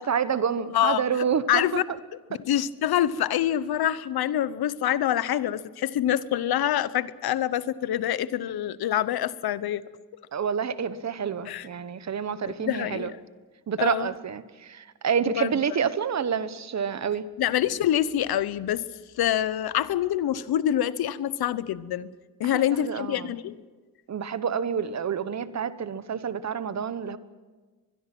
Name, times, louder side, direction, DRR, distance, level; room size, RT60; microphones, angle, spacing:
voice 1, 0.0-1.8 2.3-2.4 10.3-13.1 13.7-17.3 22.5-23.4 24.1-27.2, right 7 dB, 50° right, 14 dB, 1.0 m, -28 dB
voice 2, 1.5-2.0 2.4-9.8 11.5-11.7 12.4-13.2 13.8-14.1 15.4-15.5 17.4-18.8 19.2-22.1 22.4-23.6, left 11 dB, 90° left, 17 dB, 0.9 m, -26 dB
24.5 x 21.5 x 6.0 m, 1.3 s
cardioid pair, 115°, 36 cm